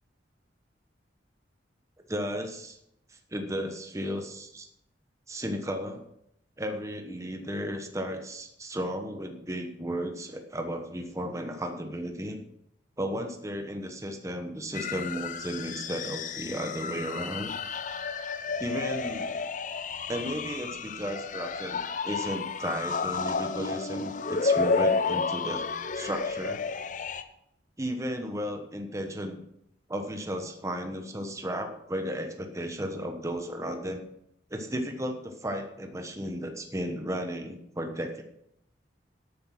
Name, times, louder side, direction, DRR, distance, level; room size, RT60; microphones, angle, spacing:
voice 1, 2.1-2.8 3.3-4.7 5.3-6.0 6.6-12.4 13.0-17.5 18.6-19.4 20.1-25.6 25.9-26.6 27.8-29.4 29.9-34.0 34.5-38.2, equal, 15° right, 5 dB, 1.2 m, -34 dB
sound 1, 14.7-27.2, left 4 dB, 45° left, 0.7 m, -31 dB
12.0 x 8.8 x 5.8 m, 0.77 s
head